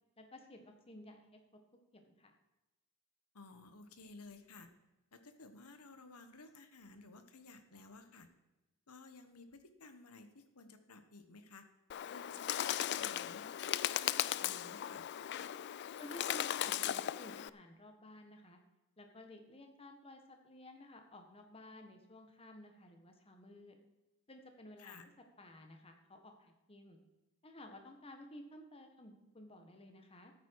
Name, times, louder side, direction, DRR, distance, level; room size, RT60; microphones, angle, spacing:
voice 1, 0.2-1.4 1.9-2.3 16.0-18.6 19.0-23.8 24.3-25.0 25.4-27.0 27.4-30.3, left 1 dB, 25° left, 5 dB, 1.5 m, -54 dB
voice 2, 3.3-4.7 5.1-8.3 8.9-11.7 12.1-15.1 24.8-25.1, left 3 dB, 80° left, 9 dB, 1.3 m, -55 dB
Bird, 11.9-17.5, left 11 dB, 50° left, 0.3 m, -37 dB
13.5 x 9.0 x 4.8 m, 1.1 s
head